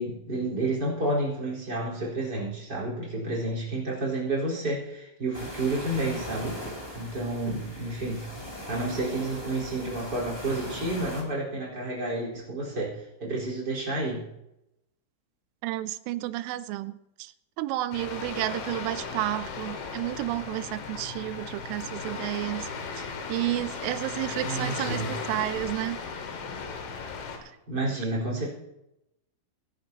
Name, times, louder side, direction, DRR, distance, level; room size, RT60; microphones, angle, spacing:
voice 1, 0.0-6.6 6.9-8.3 8.7-14.3 24.4-25.2 27.7-28.5, right 2 dB, 20° right, -4 dB, 4.2 m, -30 dB
sound 1, 5.3-11.2, left 1 dB, 10° left, 1.3 m, -39 dB
voice 2, 15.6-16.9 17.2-17.3 17.6-22.7 23.3-26.0, right 16 dB, 85° right, 14 dB, 3.0 m, -31 dB
sound 2, 17.9-27.4, left 5 dB, 75° left, 4.2 m, -36 dB
23.0 x 10.5 x 2.9 m, 0.86 s
omnidirectional pair, 5.6 m